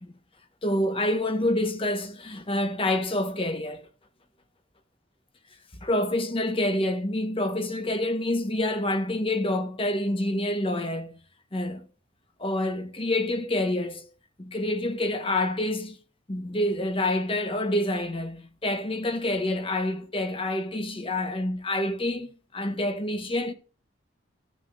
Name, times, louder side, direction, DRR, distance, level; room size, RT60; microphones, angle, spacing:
voice 1, 0.6-3.9 5.8-11.2 11.5-11.8 12.4-14.1 14.4-16.0 16.3-23.5, left 1 dB, 30° left, 1.2 m, -27 dB
15.5 x 6.6 x 2.6 m
head